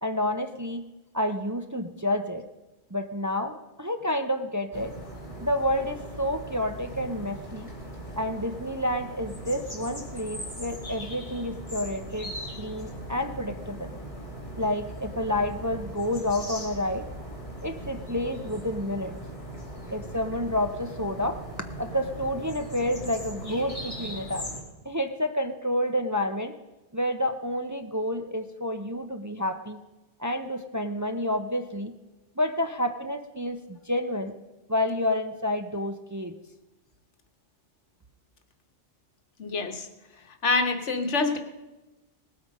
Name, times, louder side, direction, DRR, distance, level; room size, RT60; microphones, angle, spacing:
voice 1, 0.0-0.8 1.1-2.4 2.9-4.9 5.4-7.7 8.2-12.3 12.6-13.9 14.6-17.1 17.6-19.1 19.9-21.4 21.8-24.5 24.8-26.5 26.9-29.8 30.2-31.9 32.4-34.3 34.7-36.3, left 1 dB, 20° right, 6 dB, 0.6 m, -29 dB
sound 1, 4.7-24.6, equal, 30° left, 2.5 m, -39 dB
voice 2, 39.4-39.9 40.3-41.4, left 3 dB, 85° left, 7 dB, 1.6 m, -26 dB
19.0 x 8.3 x 5.3 m, 1.0 s
omnidirectional pair, 1.2 m